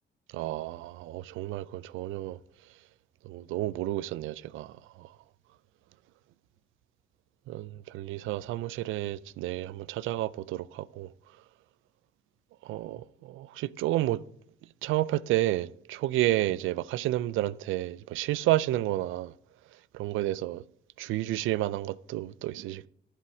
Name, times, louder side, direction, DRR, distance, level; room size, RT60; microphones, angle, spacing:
voice 1, 0.3-2.4 3.2-5.1 7.5-11.1 12.6-14.2 14.8-19.3 19.9-20.6 21.0-22.9, right 15 dB, 85° right, 0.4 m, -31 dB
11.5 x 4.9 x 6.0 m
cardioid pair, 90°, 20 cm